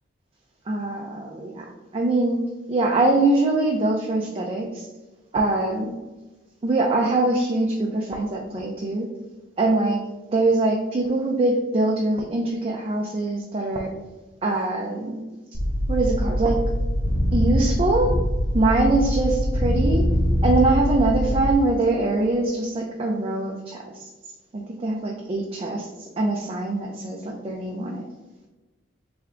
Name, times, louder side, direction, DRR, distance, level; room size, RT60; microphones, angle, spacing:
voice 1, 0.7-1.6 1.9-2.4 2.7-4.9 5.3-6.0 6.6-9.1 9.6-10.0 10.3-13.9 14.4-15.2 15.9-16.6 17.3-18.1 18.5-20.0 20.4-24.1 24.5-25.9 26.2-28.0, right 2 dB, 30° right, 0 dB, 0.4 m, -23 dB
sound 1, 15.5-21.5, equal, 80° left, 0.7 m, -23 dB
3.4 x 3.3 x 3.6 m, 1.2 s
head